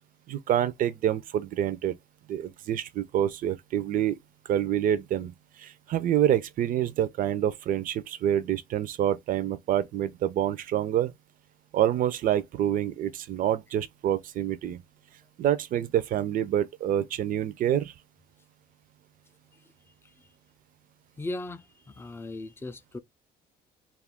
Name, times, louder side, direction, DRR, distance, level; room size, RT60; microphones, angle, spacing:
voice 1, 0.3-2.0 2.3-4.2 4.5-5.3 5.6-11.1 11.7-14.8 15.4-17.9, right 11 dB, 55° right, 0.4 m, -27 dB
voice 2, 21.2-23.0, left 2 dB, 15° left, 0.3 m, -37 dB
2.4 x 2.2 x 3.5 m
cardioid pair, 110°, 17 cm